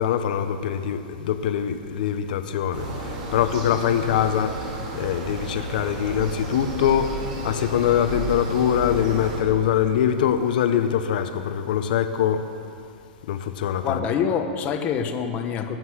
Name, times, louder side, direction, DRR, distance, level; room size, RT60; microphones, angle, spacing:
voice 1, 0.0-2.8 3.3-4.5 4.9-7.2 7.4-12.4 13.3-14.0, left 9 dB, 65° left, 9 dB, 1.1 m, -23 dB
sound 1, 2.7-9.4, right 1 dB, 55° right, 4.4 m, -32 dB
voice 2, 13.8-15.8, left 7 dB, 30° left, 6 dB, 1.1 m, -25 dB
21.5 x 8.0 x 6.4 m, 2.4 s
supercardioid pair, 155°, 5 cm